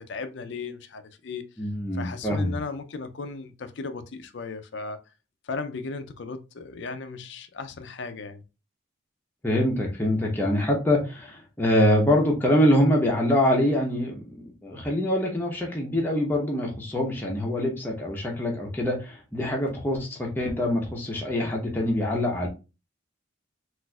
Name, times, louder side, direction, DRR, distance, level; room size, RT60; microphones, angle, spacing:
voice 1, 0.0-1.4 1.9-5.0 5.4-8.4, left 4 dB, 60° left, 0.4 m, -36 dB
voice 2, 1.6-2.6 9.4-22.5, left 1 dB, 10° left, 0.7 m, -24 dB
4.0 x 2.5 x 2.3 m
head